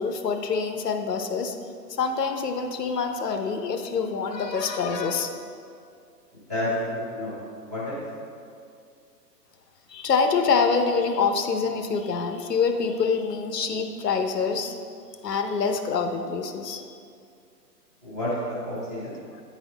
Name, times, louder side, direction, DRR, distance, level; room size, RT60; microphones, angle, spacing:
voice 1, 0.0-1.5 2.0-5.3 9.9-14.7 15.2-16.8 19.3-19.4, left 5 dB, 75° left, 6 dB, 0.8 m, -25 dB
voice 2, 7.1-8.0 18.0-19.2, left 1 dB, 10° right, -13 dB, 0.8 m, -31 dB
9.6 x 4.2 x 4.0 m, 2.4 s
hypercardioid pair, 180°, 49 cm